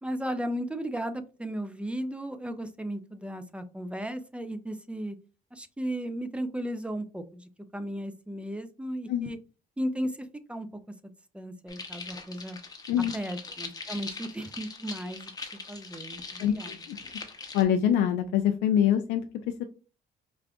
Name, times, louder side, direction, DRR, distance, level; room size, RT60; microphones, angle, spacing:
voice 1, 0.0-5.2 5.5-9.4 9.8-10.7 11.3-12.6 13.1-15.3 15.7-16.8, equal, 5° right, 10 dB, 0.4 m, -35 dB
sound 1, 11.7-17.6, left 4 dB, 20° left, 0.7 m, -41 dB
voice 2, 16.4-17.0 17.5-19.2 19.6-19.7, left 9 dB, 85° left, 5 dB, 0.4 m, -24 dB
5.0 x 2.4 x 2.3 m, 0.34 s
cardioid pair, 110°, 17 cm